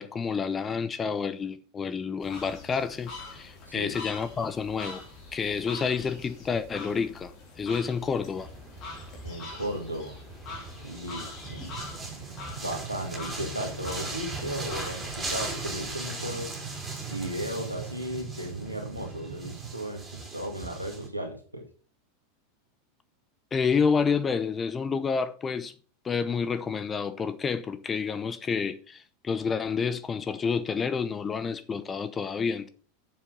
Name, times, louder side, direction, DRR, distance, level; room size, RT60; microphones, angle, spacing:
voice 1, 0.0-5.0 5.3-7.3 7.6-8.5 23.5-25.7 26.0-32.7, left 5 dB, 20° left, 0.8 m, -29 dB
sound 1, 2.2-16.0, left 3 dB, 40° left, 3.5 m, -44 dB
sound 2, 8.4-21.1, right 3 dB, 15° right, 4.2 m, -40 dB
voice 2, 9.2-10.2 10.8-11.7 12.6-16.6 17.1-21.6, equal, 90° right, 1.8 m, -35 dB
sound 3, 11.4-19.7, right 6 dB, 50° right, 1.3 m, -42 dB
7.5 x 7.3 x 5.5 m
figure-of-eight pair, 85°, 0 cm